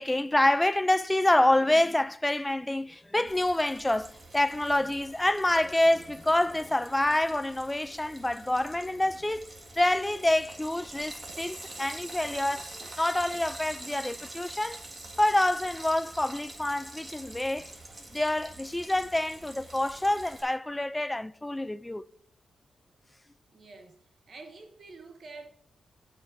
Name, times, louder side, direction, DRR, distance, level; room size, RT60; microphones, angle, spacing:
voice 1, 0.0-9.5 9.8-14.8 15.2-17.7 18.1-22.1, left 1 dB, 15° left, 0.3 m, -27 dB
Frying (food), 3.3-20.4, right 2 dB, 30° right, 1.6 m, -45 dB
sound 1, 10.8-12.0 12.3-14.1 14.3-15.1 15.4-15.6 15.9-16.1 16.4-16.7 16.9-17.0, right 2 dB, 80° right, 1.6 m, -58 dB
voice 2, 23.5-25.5, right 3 dB, 55° right, 0.8 m, -48 dB
12.5 x 5.1 x 2.6 m
cardioid pair, 75°, 0 cm